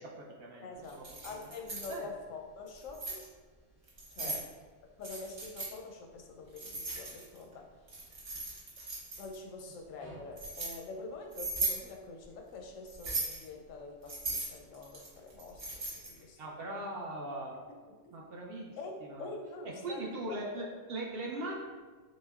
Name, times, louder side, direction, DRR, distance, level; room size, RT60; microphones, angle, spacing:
voice 1, 0.0-1.3 1.9-2.1 4.2-4.3 16.4-17.5 18.1-18.7 19.0-19.3 19.8-21.5, right 1 dB, 60° right, -2 dB, 0.6 m, -40 dB
voice 2, 0.6-3.2 4.1-4.5 5.0-7.7 9.2-16.9 18.0-18.1 18.8-20.5, left 3 dB, 90° left, 2 dB, 1.0 m, -46 dB
Keys jangling, 0.9-1.9 2.7-3.2 3.9-4.4 5.0-5.7 6.6-7.4 7.9-9.3 10.0-10.7 11.3-11.8 12.9-13.4 14.1-16.2, right 2 dB, 45° right, 1.0 m, -38 dB
6.1 x 2.0 x 2.3 m, 1.4 s
omnidirectional pair, 1.3 m